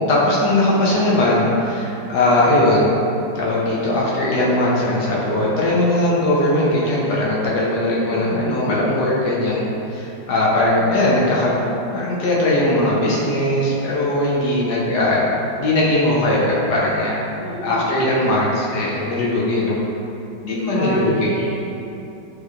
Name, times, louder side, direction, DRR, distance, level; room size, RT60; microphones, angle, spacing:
voice 1, 0.0-2.9 3.3-11.6 11.9-17.2 17.6-19.8 20.4-21.3, left 1 dB, 65° left, -5 dB, 1.2 m, -19 dB
voice 2, 8.1-8.7 17.4-18.1 20.7-21.5, left 1 dB, 20° left, -10 dB, 0.4 m, -31 dB
6.2 x 3.0 x 2.5 m, 2.9 s
omnidirectional pair, 2.0 m